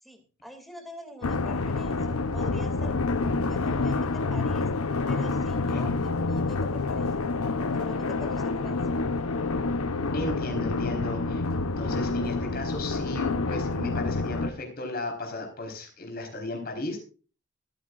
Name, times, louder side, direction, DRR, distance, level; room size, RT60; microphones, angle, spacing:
voice 1, 0.0-4.7 5.1-7.3 7.8-8.8, equal, ahead, 5 dB, 2.6 m, -45 dB
sound 1, 1.2-14.5, left 3 dB, 90° left, 0.8 m, -28 dB
voice 2, 10.1-11.4 11.8-17.0, left 2 dB, 45° left, 2 dB, 4.3 m, -35 dB
24.0 x 8.6 x 2.5 m, 0.37 s
head